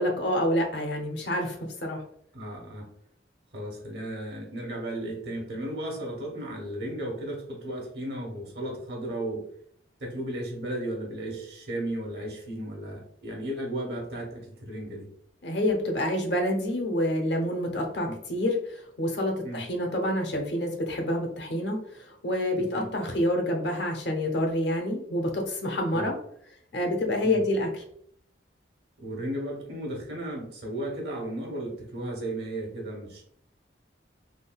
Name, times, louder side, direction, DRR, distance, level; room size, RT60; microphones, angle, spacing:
voice 1, 0.0-2.0 15.4-26.1 26.7-27.7, left 1 dB, 65° left, 1 dB, 0.7 m, -28 dB
voice 2, 2.3-2.9 3.5-9.5 10.0-15.1 18.1-18.2 19.4-19.6 22.5-22.9 25.9-26.1 27.2-27.4 29.0-33.2, right 1 dB, 60° right, 0 dB, 1.1 m, -35 dB
3.6 x 2.3 x 2.2 m, 0.65 s
head